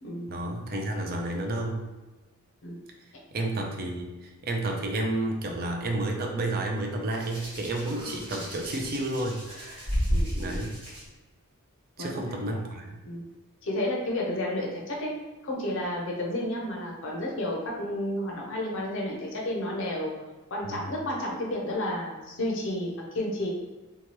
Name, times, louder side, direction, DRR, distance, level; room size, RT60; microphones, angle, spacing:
voice 1, 0.3-1.8 3.3-9.4 10.4-10.8 12.0-13.0 20.7-20.8, right 2 dB, 40° right, 2 dB, 0.4 m, -31 dB
Hands, 7.1-11.0 12.0-12.3, equal, 25° right, 1.0 m, -32 dB
voice 2, 10.1-10.5 12.0-12.1 13.0-13.2 13.6-20.1 20.5-23.5, left 1 dB, 55° left, -2 dB, 0.6 m, -31 dB
2.8 x 2.2 x 3.0 m, 1.2 s
head